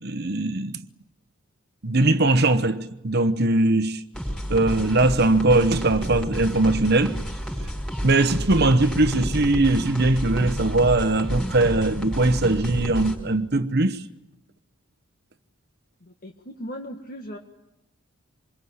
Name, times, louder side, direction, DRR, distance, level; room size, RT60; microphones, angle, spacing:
voice 1, 0.0-0.8 1.8-4.0 4.5-7.2 8.0-14.0, right 2 dB, 50° right, 1.0 m, -20 dB
sound 1, 4.1-13.2, equal, 5° left, 5.1 m, -30 dB
voice 2, 16.0-17.4, equal, 45° left, 1.6 m, -38 dB
26.5 x 22.0 x 9.6 m
head